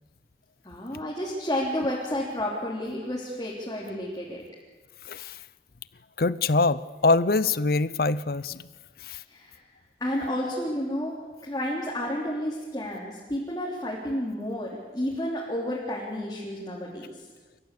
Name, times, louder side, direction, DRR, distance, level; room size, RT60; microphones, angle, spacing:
voice 1, 0.6-4.4 9.3-9.6 10.0-11.1 11.4-17.2, left 1 dB, 20° left, -5 dB, 3.5 m, -31 dB
voice 2, 6.2-8.6 9.1-9.2, left 3 dB, 55° left, 17 dB, 0.7 m, -24 dB
29.0 x 15.0 x 8.5 m, 1.3 s
head